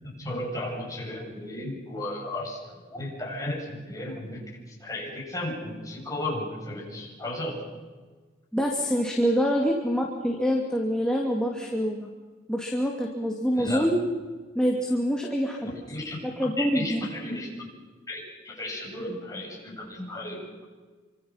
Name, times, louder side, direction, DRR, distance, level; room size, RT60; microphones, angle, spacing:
voice 1, 0.0-7.6 13.5-13.8 15.6-17.7 18.1-20.4, left 1 dB, 20° left, -2 dB, 7.9 m, -34 dB
voice 2, 8.5-12.1 12.5-14.0 14.5-15.7 16.2-17.1, equal, 5° left, -1 dB, 2.5 m, -26 dB
28.0 x 25.5 x 5.8 m, 1.4 s
head